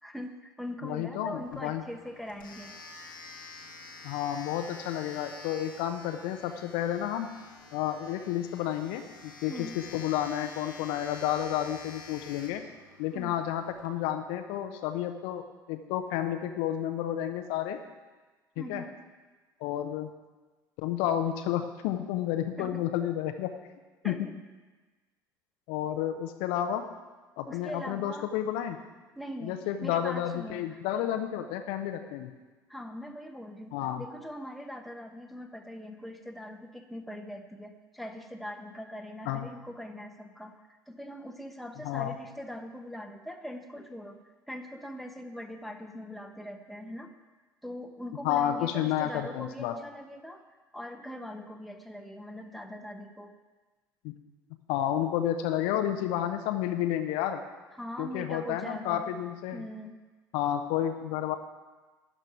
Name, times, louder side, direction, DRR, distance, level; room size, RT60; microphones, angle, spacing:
voice 1, 0.0-2.8 9.5-9.8 13.1-13.4 18.6-19.0 22.6-22.8 24.0-24.3 27.5-28.3 29.1-31.0 32.7-47.1 47.6-50.4 50.7-53.3 57.7-59.1 59.5-60.0, equal, ahead, 4 dB, 1.2 m, -42 dB
voice 2, 0.8-1.8 4.0-7.3 7.7-12.6 13.0-17.8 18.6-18.8 19.6-20.1 20.8-23.5 24.0-24.1 25.7-26.8 27.4-28.8 29.4-32.3 33.7-34.0 39.3-39.5 41.8-42.2 48.2-49.7 54.0-54.1 54.7-57.4 58.0-59.6 60.3-61.3, left 11 dB, 60° left, 7 dB, 0.8 m, -31 dB
Domestic sounds home sounds, 1.4-13.8, left 4 dB, 85° left, 1.4 m, -48 dB
12.5 x 5.3 x 9.0 m, 1.3 s
figure-of-eight pair, 60°, 11 cm